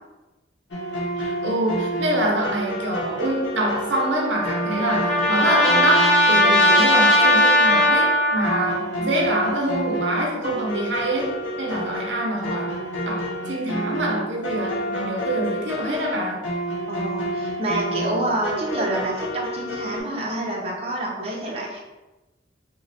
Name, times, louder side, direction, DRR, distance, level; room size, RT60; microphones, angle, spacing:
sound 1, 0.7-20.0, equal, 80° left, 0.6 m, -29 dB
voice 1, 1.2-16.4, right 1 dB, 70° right, -1 dB, 0.7 m, -25 dB
Trumpet, 3.9-8.7, equal, 5° left, 0.5 m, -18 dB
voice 2, 16.9-21.8, right 1 dB, 35° right, -4 dB, 0.7 m, -27 dB
3.0 x 2.2 x 4.0 m, 1.1 s
head